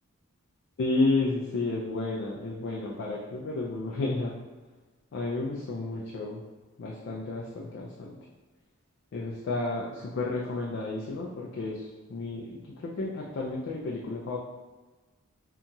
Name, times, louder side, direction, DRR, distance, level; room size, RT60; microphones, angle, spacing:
voice 1, 0.8-4.3 5.1-6.4 6.8-8.1 9.1-11.8 12.1-14.4, left 2 dB, 55° left, -4 dB, 0.3 m, -31 dB
2.8 x 2.6 x 2.3 m, 1.3 s
head